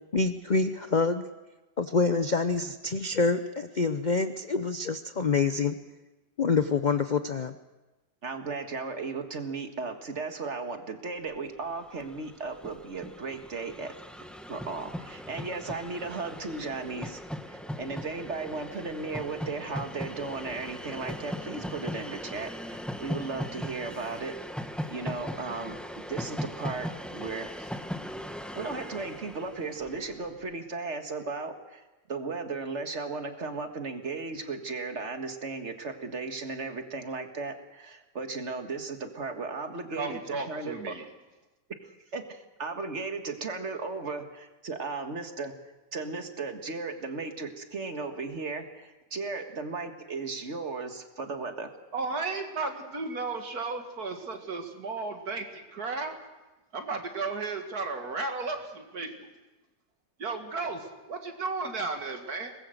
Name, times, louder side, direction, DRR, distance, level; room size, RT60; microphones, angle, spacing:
voice 1, 0.1-1.2 1.8-5.7 6.4-7.5, left 4 dB, 50° left, 9 dB, 0.5 m, -26 dB
voice 2, 8.2-13.9 14.5-17.2 17.5-24.3 24.9-27.7 28.5-41.0 41.8-45.5 45.9-51.7, right 4 dB, 40° right, 6 dB, 2.0 m, -36 dB
Train, 11.6-11.7 11.9-30.3, equal, ahead, 0.8 m, -39 dB
voice 3, 39.9-41.0 51.9-56.2 56.7-59.3 60.2-62.6, right 3 dB, 60° right, 5 dB, 2.5 m, -34 dB
23.5 x 20.0 x 6.5 m, 1.1 s
omnidirectional pair, 1.8 m